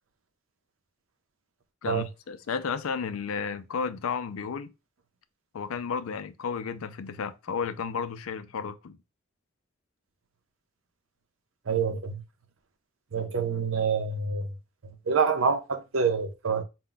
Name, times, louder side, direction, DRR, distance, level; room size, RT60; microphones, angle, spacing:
voice 1, 1.8-4.7 5.5-9.0, left 6 dB, 85° left, 0.4 m, -33 dB
voice 2, 11.7-12.2 13.1-14.5 15.1-16.6, right 5 dB, 75° right, 0.6 m, -26 dB
4.3 x 2.2 x 3.8 m
head